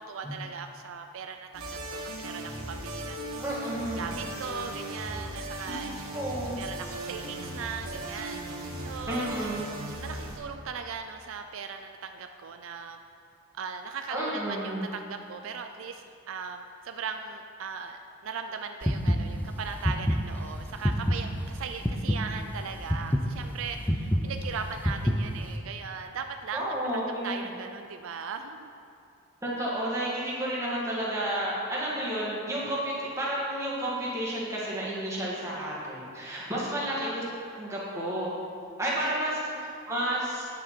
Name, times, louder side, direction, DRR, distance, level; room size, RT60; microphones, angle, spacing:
voice 1, 0.0-3.4 4.0-6.0 6.5-9.3 10.0-13.0 13.5-28.7 39.0-39.7, right 6 dB, 70° right, 6 dB, 0.4 m, -39 dB
sound 1, 1.5-10.4, right 1 dB, 85° right, 1.6 m, -38 dB
voice 2, 3.4-4.1 5.7-5.8 6.1-6.6 9.1-9.7 14.1-14.9 26.5-27.5 29.4-37.2 37.5-38.4 38.8-40.4, right 1 dB, 15° right, -7 dB, 1.9 m, -31 dB
sound 2, 18.8-25.6, equal, 5° left, 0.5 m, -28 dB
9.6 x 7.4 x 4.4 m, 2.6 s
head